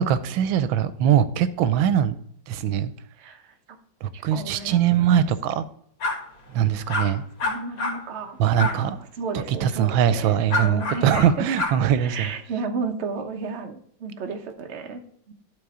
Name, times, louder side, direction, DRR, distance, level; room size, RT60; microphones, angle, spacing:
voice 1, 0.0-2.2 2.5-2.9 4.0-5.6 6.5-7.2 8.4-9.0 9.5-12.3, right 9 dB, 90° right, 13 dB, 1.4 m, -21 dB
voice 2, 4.1-5.1 7.4-8.9 9.2-11.5 12.0-15.0 15.3-15.4, right 4 dB, 45° right, 4 dB, 0.9 m, -33 dB
sound 1, 6.0-6.2 6.9-7.1 7.4-8.0 8.6-8.7 10.5-11.2 11.6-11.7, left 3 dB, 85° left, 2.4 m, -25 dB
12.0 x 4.0 x 4.9 m, 0.66 s
omnidirectional pair, 2.1 m